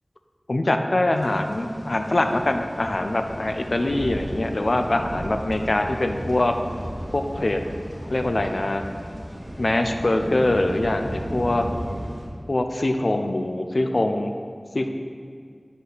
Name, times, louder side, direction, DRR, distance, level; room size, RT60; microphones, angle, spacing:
voice 1, 0.5-6.6 7.1-7.6 8.1-8.8 9.6-11.7 12.5-14.3 14.7-14.9, left 1 dB, 65° left, 6 dB, 0.5 m, -23 dB
sound 1, 1.1-12.3, equal, 40° right, 2.2 m, -35 dB
10.0 x 5.4 x 4.0 m, 2.1 s
wide cardioid pair, 50°, 0 cm